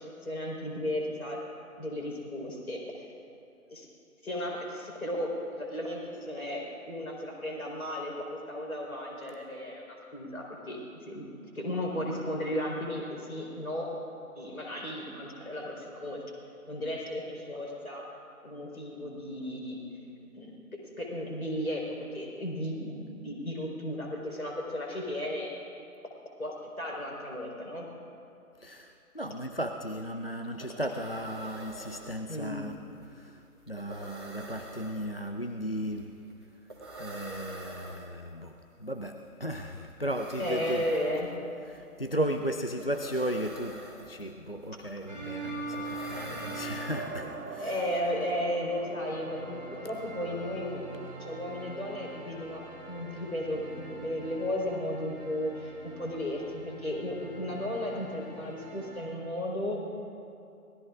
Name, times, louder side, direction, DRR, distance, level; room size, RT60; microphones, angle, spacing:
voice 1, 0.0-1.4 1.8-3.1 3.7-3.9 4.2-10.8 11.1-11.3 11.5-13.9 14.4-16.2 16.7-18.1 18.4-19.8 20.3-20.5 20.8-25.6 26.4-27.9 32.3-32.6 40.4-41.3 47.6-50.9 51.2-59.8, left 1 dB, 65° left, -1 dB, 4.5 m, -35 dB
voice 2, 28.6-32.8 33.1-36.1 37.0-38.5 38.8-40.8 41.7-47.8, equal, 40° left, 5 dB, 0.5 m, -35 dB
sound 1, 30.4-47.5, right 1 dB, 15° right, 1.2 m, -47 dB
sound 2, 45.1-47.5 48.6-59.2, right 2 dB, 5° left, 1.9 m, -44 dB
sound 3, 46.9-53.6, right 4 dB, 65° right, 0.9 m, -45 dB
24.5 x 19.0 x 2.5 m, 2.8 s
figure-of-eight pair, 160°, 45 cm